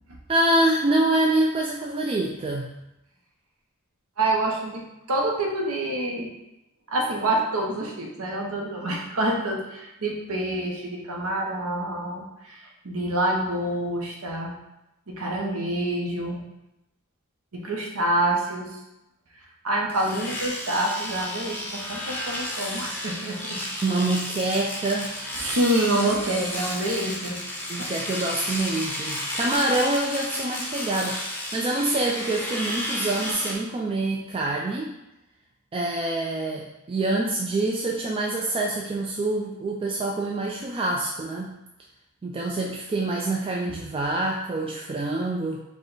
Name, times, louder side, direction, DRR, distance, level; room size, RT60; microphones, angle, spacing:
voice 1, 0.3-2.8 23.8-25.2 27.7-34.9 35.7-41.5 42.2-45.6, right 2 dB, 25° right, -1 dB, 0.3 m, -26 dB
voice 2, 4.2-4.8 5.1-6.3 6.9-14.6 15.1-16.5 17.5-18.8 19.6-23.6 25.4-27.4 27.8-27.9 28.5-28.6, right 1 dB, 70° right, 0 dB, 0.8 m, -27 dB
Domestic sounds home sounds, 19.9-33.5, left 1 dB, 10° left, 0.6 m, -32 dB
4.8 x 2.2 x 3.9 m, 0.91 s
head